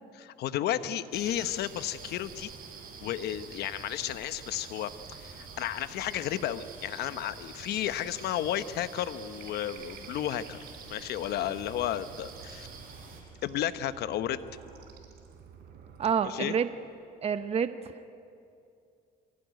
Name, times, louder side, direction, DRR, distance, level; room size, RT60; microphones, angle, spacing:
voice 1, 0.1-2.5 3.0-10.6 10.9-12.7 13.4-14.4 16.2-16.5, left 11 dB, 75° left, 12 dB, 1.0 m, -33 dB
sound 1, 1.1-13.2, right 5 dB, 60° right, 5.8 m, -47 dB
sound 2, 9.3-16.1, right 7 dB, 75° right, 3.7 m, -52 dB
voice 2, 16.0-16.7 17.2-17.9, right 7 dB, 35° right, 10 dB, 0.8 m, -28 dB
23.5 x 16.0 x 9.3 m, 2.5 s
cardioid pair, 110°, 17 cm